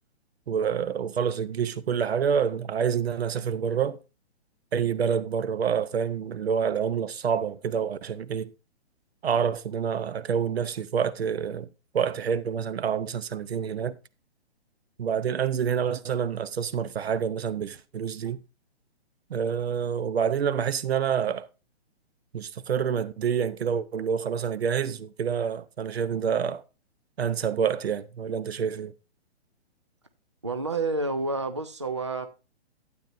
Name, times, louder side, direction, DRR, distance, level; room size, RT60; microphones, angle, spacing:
voice 1, 0.5-4.0 4.7-8.5 9.2-11.7 11.9-14.0 15.0-18.4 19.3-21.5 22.3-26.6 27.2-28.9, right 7 dB, 65° right, 0.8 m, -27 dB
voice 2, 30.4-32.3, right 3 dB, 30° right, 0.4 m, -29 dB
12.0 x 8.7 x 2.6 m
hypercardioid pair, 180°, 33 cm